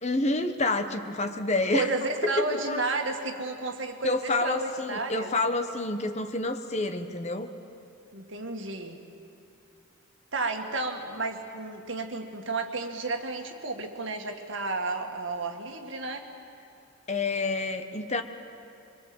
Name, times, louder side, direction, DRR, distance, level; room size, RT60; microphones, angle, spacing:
voice 1, 0.0-1.9 2.5-2.8 4.0-7.5 17.1-18.2, left 2 dB, 30° left, 8 dB, 1.1 m, -28 dB
voice 2, 1.7-5.3 8.1-9.0 10.3-16.3, right 3 dB, 60° right, 3 dB, 2.1 m, -32 dB
24.5 x 22.5 x 7.9 m, 2.5 s
head